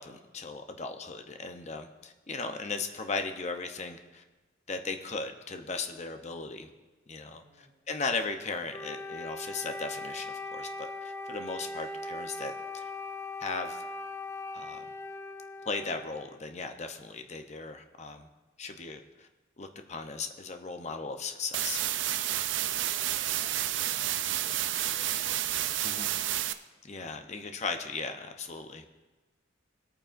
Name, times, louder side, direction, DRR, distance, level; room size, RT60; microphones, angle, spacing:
voice 1, 0.0-4.2 4.7-6.7 7.1-12.8 13.4-13.8 14.5-14.9 15.6-18.3 18.6-19.3 19.6-21.8 25.8-26.1 26.8-28.8, left 4 dB, 35° left, 6 dB, 0.7 m, -37 dB
voice 2, 7.3-7.7 22.6-26.1, right 1 dB, 40° right, -3 dB, 2.8 m, -56 dB
Wind instrument woodwind instrument, 8.7-16.4, left 2 dB, 15° left, 0.3 m, -40 dB
sound 1, 21.5-26.5, right 12 dB, 65° right, 0.4 m, -30 dB
18.5 x 8.9 x 2.5 m, 1.2 s
head